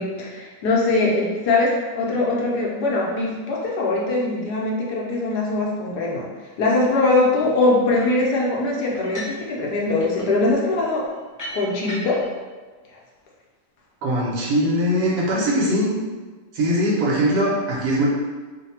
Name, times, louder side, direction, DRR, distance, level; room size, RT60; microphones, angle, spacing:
voice 1, 0.0-6.3 6.6-11.0 11.5-12.2, left 2 dB, 70° left, -3 dB, 1.2 m, -22 dB
sound 1, 8.0-8.3 8.9-9.4 9.7-12.3, equal, 30° left, 0.3 m, -37 dB
voice 2, 14.0-15.9 16.5-18.1, equal, 65° right, -5 dB, 1.3 m, -21 dB
3.2 x 2.2 x 4.2 m, 1.4 s
omnidirectional pair, 1.9 m